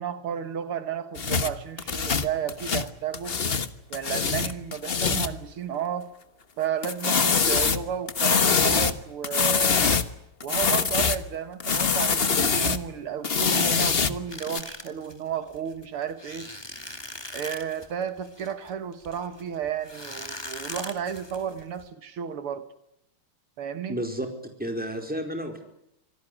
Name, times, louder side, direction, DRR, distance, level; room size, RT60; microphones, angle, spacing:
voice 1, 0.0-3.4 3.9-6.1 6.6-9.9 10.4-16.5 17.3-22.6 23.6-24.0, right 8 dB, 80° right, 11 dB, 2.3 m, -32 dB
sound 1, 1.2-3.7 3.9-5.4 6.8-9.0 9.2-10.1 10.4-11.3 11.6-12.8 13.2-14.6, left 5 dB, 35° left, 1.1 m, -24 dB
sound 2, 14.3-21.8, left 1 dB, 10° left, 2.3 m, -41 dB
voice 2, 23.9-24.3 24.6-25.6, equal, 5° right, 4 dB, 4.4 m, -31 dB
26.5 x 18.0 x 9.9 m, 0.79 s
omnidirectional pair, 2.4 m